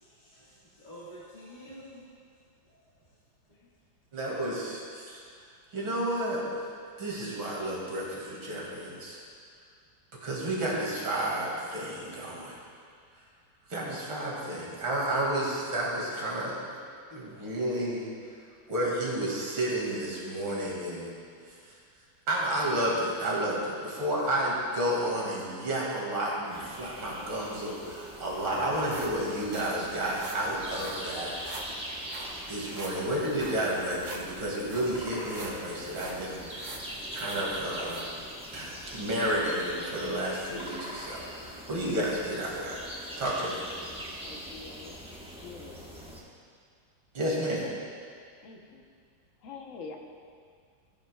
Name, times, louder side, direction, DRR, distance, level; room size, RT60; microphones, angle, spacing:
voice 1, 0.0-2.1 2.6-3.1 3.5-3.7, equal, 25° left, -11 dB, 1.6 m, -49 dB
voice 2, 4.1-5.2 5.7-6.6 7.0-9.2 10.2-12.6 13.7-16.8 17.1-18.1 18.7-21.1 21.5-21.6 22.3-31.6 32.5-36.6 37.1-38.1 38.5-44.0 47.1-47.8, right 1 dB, 85° right, -4 dB, 2.8 m, -31 dB
sound 1, 26.5-46.2, equal, 5° right, 0.7 m, -42 dB
sound 2, 27.8-38.7 39.2-39.3 39.8-39.9, right 2 dB, 40° right, 0.7 m, -46 dB
voice 3, 44.2-45.0 45.4-45.8 48.4-48.8 49.4-50.0, left 4 dB, 50° left, 2 dB, 1.0 m, -45 dB
14.0 x 10.0 x 2.3 m, 2.2 s
omnidirectional pair, 2.1 m